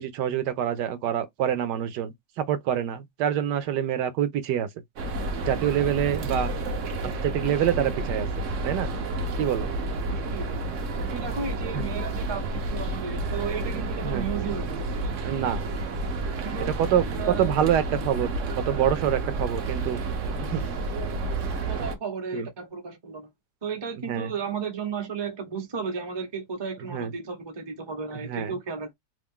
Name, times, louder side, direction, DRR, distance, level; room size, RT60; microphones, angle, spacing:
voice 1, 0.0-4.7 5.5-6.5 7.0-8.3 8.6-8.9 9.4-9.7 11.7-11.8 14.0-14.3 15.2-15.6 16.8-17.1 17.4-18.3 18.6-20.0 20.5-20.6 22.3-22.5 24.1-24.3 26.9-27.1 28.2-28.6, right 10 dB, 75° right, 1.2 m, -26 dB
sound 1, 5.0-22.0, right 2 dB, 60° right, 0.9 m, -30 dB
voice 2, 10.1-10.6 11.1-14.8 16.4-16.7 17.1-17.6 21.7-23.3 23.6-28.9, right 5 dB, 25° right, 0.5 m, -34 dB
3.0 x 2.5 x 3.5 m
omnidirectional pair, 1.9 m